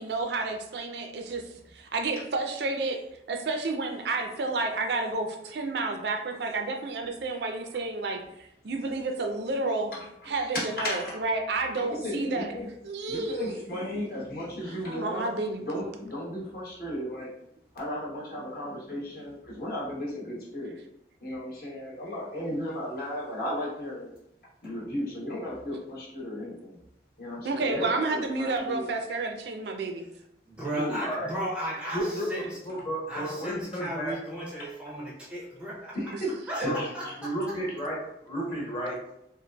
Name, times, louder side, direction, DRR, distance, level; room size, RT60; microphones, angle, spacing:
voice 1, 0.0-1.4 1.7-3.0 3.3-9.9 10.3-12.5 12.8-13.6 14.6-15.8 27.4-30.0, right 3 dB, 75° right, 5 dB, 0.4 m, -30 dB
voice 2, 10.5-11.2 11.7-12.7 13.1-15.3 15.6-17.3 17.7-20.8 21.2-24.1 24.6-26.8 27.2-28.8 30.7-31.1 35.9-36.3 36.8-36.9, equal, 55° left, -5 dB, 1.0 m, -35 dB
voice 3, 30.5-32.6 33.1-36.0 36.5-37.6, equal, 5° right, -5 dB, 0.5 m, -35 dB
voice 4, 31.0-31.3 31.9-34.1 36.6-36.8 37.2-39.0, equal, 30° left, -5 dB, 1.0 m, -32 dB
3.9 x 2.4 x 2.2 m, 0.80 s
head